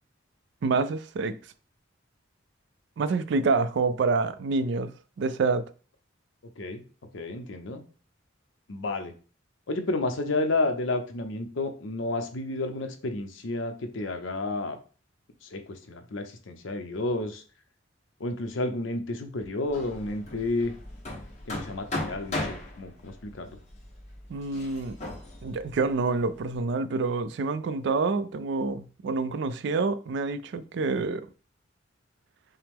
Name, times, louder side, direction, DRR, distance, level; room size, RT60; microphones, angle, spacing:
voice 1, 0.6-1.4 3.0-5.6 24.3-25.0 25.4-31.3, right 4 dB, 65° right, 0.3 m, -27 dB
voice 2, 7.1-7.8 8.7-9.1 9.7-14.8 15.4-17.4 18.2-20.7 21.5-23.5, left 2 dB, 80° left, 0.7 m, -31 dB
Hammer, 19.7-26.5, left 2 dB, 35° left, 1.1 m, -38 dB
5.6 x 2.0 x 3.5 m
head